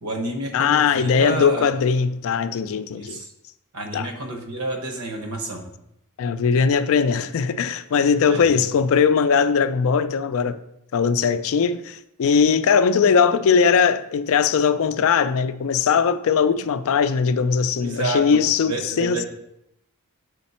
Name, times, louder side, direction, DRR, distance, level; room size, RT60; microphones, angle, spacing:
voice 1, 0.0-1.7 3.0-3.3 3.7-5.6 8.3-8.5 17.8-18.4 18.7-19.3, right 2 dB, 75° right, 1.1 m, -29 dB
voice 2, 0.5-3.2 3.9-4.1 6.2-10.6 10.9-19.3, left 6 dB, 65° left, 0.4 m, -20 dB
6.3 x 4.2 x 4.2 m
head